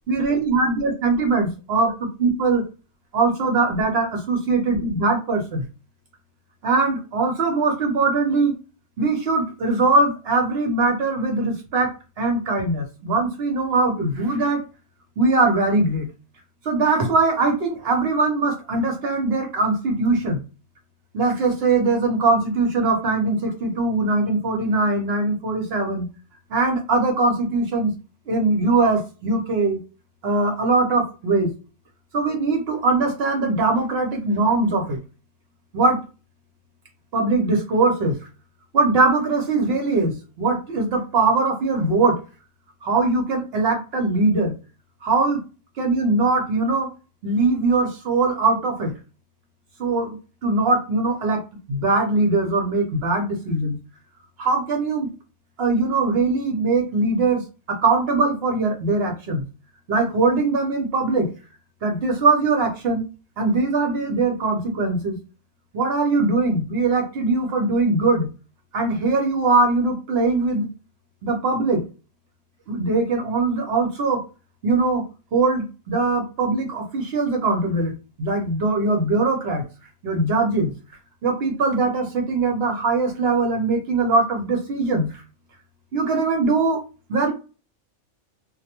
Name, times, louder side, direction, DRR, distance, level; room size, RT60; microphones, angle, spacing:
voice 1, 0.1-1.9 2.2-2.6 3.1-5.6 6.6-8.5 9.0-11.9 12.2-14.6 15.2-16.1 16.6-20.4 21.1-26.1 26.5-27.9 28.3-29.8 30.2-31.5 32.1-35.0 35.7-36.0 37.1-38.2 38.7-42.2 42.8-44.5 45.0-45.4 45.8-46.9 47.2-48.9 49.8-51.4 51.7-53.8 54.4-55.1 55.6-57.4 57.8-59.4 59.9-61.3 61.8-63.0 63.4-65.2 65.7-68.3 68.7-70.7 71.2-71.8 72.7-74.2 74.6-75.0 75.3-77.9 78.2-79.6 80.0-80.7 81.2-85.2 85.9-86.8 87.1-87.3, right 3 dB, 60° right, 2 dB, 0.7 m, -21 dB
2.3 x 2.0 x 2.8 m, 0.33 s
omnidirectional pair, 1.4 m